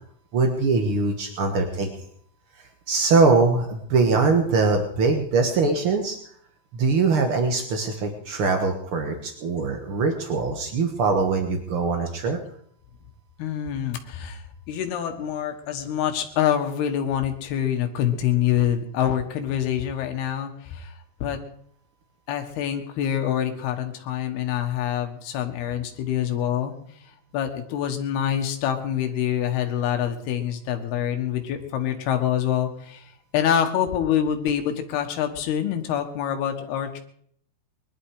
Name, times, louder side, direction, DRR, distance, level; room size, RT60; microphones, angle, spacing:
voice 1, 0.3-1.9 2.9-6.2 6.7-12.4, right 4 dB, 70° right, 4 dB, 1.3 m, -22 dB
voice 2, 13.4-14.4 14.7-20.9 21.2-21.4 22.3-26.8 27.3-33.0 33.3-37.0, left 10 dB, 80° left, 5 dB, 3.5 m, -26 dB
21.0 x 12.0 x 4.9 m, 0.63 s
omnidirectional pair, 4.5 m